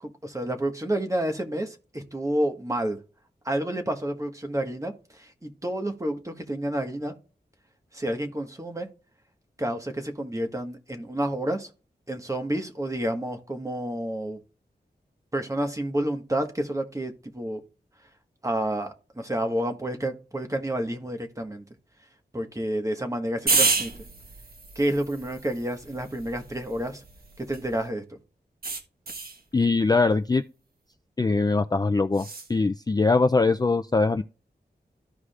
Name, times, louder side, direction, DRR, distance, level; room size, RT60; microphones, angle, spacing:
voice 1, 0.0-3.0 3.4-7.1 7.9-8.9 9.6-11.7 12.1-14.4 15.3-17.6 18.4-21.6 22.3-23.9 24.7-27.0 27.4-28.0, right 1 dB, 20° right, 1.4 m, -29 dB
sound 1, 23.5-27.9 28.6-29.4 32.1-32.5, right 3 dB, 60° right, 1.4 m, -30 dB
voice 2, 29.5-30.4 31.2-32.2 32.5-34.2, left 3 dB, 25° left, 0.3 m, -22 dB
14.5 x 4.8 x 2.4 m
wide cardioid pair, 95°, 17 cm